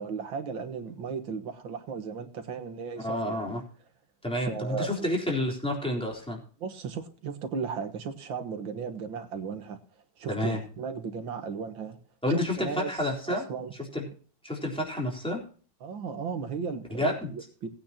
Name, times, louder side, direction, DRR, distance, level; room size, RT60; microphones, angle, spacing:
voice 1, 0.0-3.4 4.3-5.1 6.6-9.8 10.2-12.0 12.3-13.0 13.3-13.7 15.8-17.7, right 5 dB, 90° right, 6 dB, 2.2 m, -35 dB
voice 2, 3.0-3.6 4.2-6.4 10.3-10.6 12.2-13.4 13.9-14.0 14.4-15.4 16.9-17.3, left 1 dB, 5° left, -1 dB, 3.7 m, -29 dB
19.5 x 9.2 x 2.9 m, 0.41 s
omnidirectional pair, 2.0 m